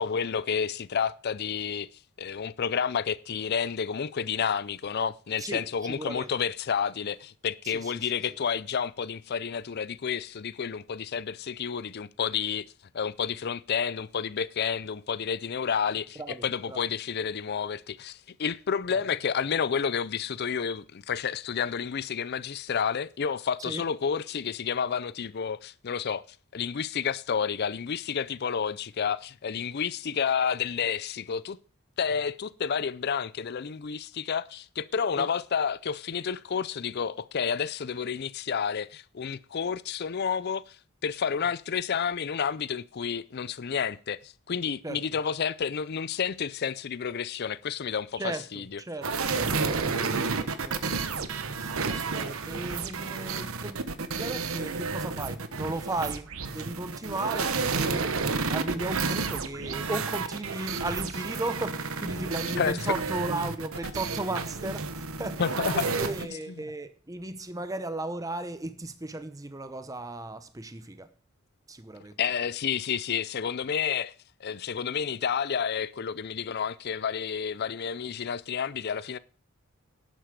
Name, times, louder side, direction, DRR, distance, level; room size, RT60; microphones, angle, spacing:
voice 1, 0.0-1.9 2.2-12.7 12.9-26.2 26.5-31.6 32.0-40.8 41.0-48.8 62.6-62.9 65.4-66.0 66.3-66.7 72.2-74.1 74.4-79.2, left 7 dB, 45° left, 0.5 m, -30 dB
voice 2, 5.9-6.3 7.6-8.1 16.2-16.4 16.7-16.9 18.9-19.0 23.7-23.8 35.2-35.3 44.8-45.0 48.2-51.2 51.5-53.8 54.2-58.2 58.5-71.1 71.7-72.2, right 2 dB, 15° right, 0.7 m, -36 dB
sound 1, 49.0-66.2, right 4 dB, 70° right, 1.2 m, -31 dB
11.5 x 9.1 x 5.2 m
head